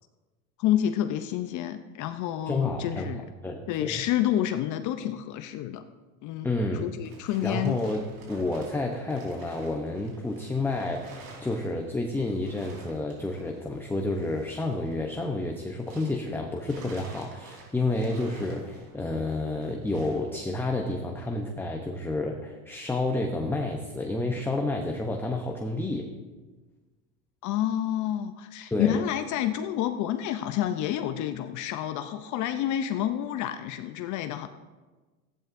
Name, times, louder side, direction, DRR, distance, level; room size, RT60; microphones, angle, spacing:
voice 1, 0.6-3.2 3.7-5.8 6.2-6.5 6.8-7.8 27.4-34.5, left 11 dB, 45° left, 9 dB, 0.6 m, -29 dB
voice 2, 2.5-4.0 6.4-6.9 7.4-26.1 28.7-29.0, left 2 dB, 5° left, 2 dB, 0.8 m, -30 dB
sound 1, 6.7-16.3 16.6-20.3, right 2 dB, 80° right, 4.0 m, -50 dB
15.0 x 10.5 x 2.6 m, 1.3 s
supercardioid pair, 110°, 43 cm